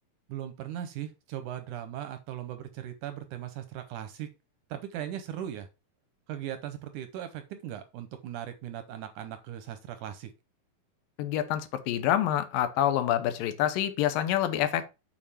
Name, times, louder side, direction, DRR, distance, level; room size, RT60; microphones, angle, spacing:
voice 1, 0.3-4.3 4.7-5.7 6.3-10.3, right 11 dB, 80° right, 1.9 m, -38 dB
voice 2, 11.2-14.8, left 11 dB, 80° left, 2.5 m, -27 dB
7.4 x 4.9 x 4.2 m
omnidirectional pair, 4.1 m